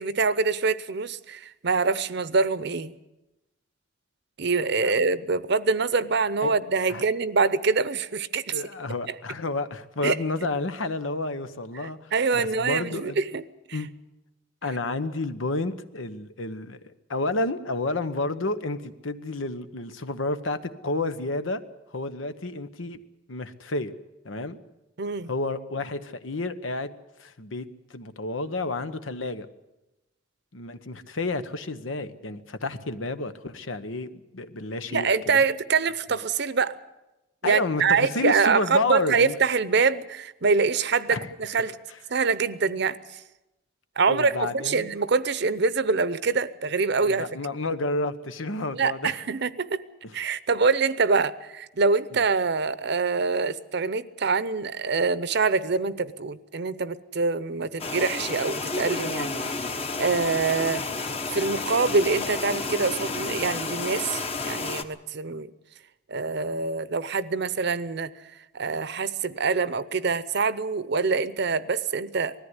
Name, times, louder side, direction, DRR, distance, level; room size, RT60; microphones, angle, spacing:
voice 1, 0.0-3.0 4.4-8.5 9.1-9.2 10.0-10.2 12.1-13.4 13.7-13.8 25.0-25.3 34.9-36.8 37.4-41.7 42.1-43.2 44.0-47.2 48.8-49.8 50.1-59.3 59.6-60.9 61.3-65.5 66.1-68.1 68.5-72.3, right 4 dB, 60° right, 16 dB, 0.8 m, -25 dB
voice 2, 8.5-13.2 13.7-13.9 14.6-21.6 21.9-23.0 23.3-23.9 24.2-24.6 25.3-26.9 27.2-29.5 30.5-35.4 37.4-39.4 41.1-41.3 44.0-44.9 47.0-49.1 52.1-52.2, left 2 dB, 90° left, 11 dB, 1.1 m, -30 dB
sound 1, 57.8-64.8, left 3 dB, 30° left, 1.0 m, -31 dB
20.0 x 14.0 x 9.7 m, 1.0 s
head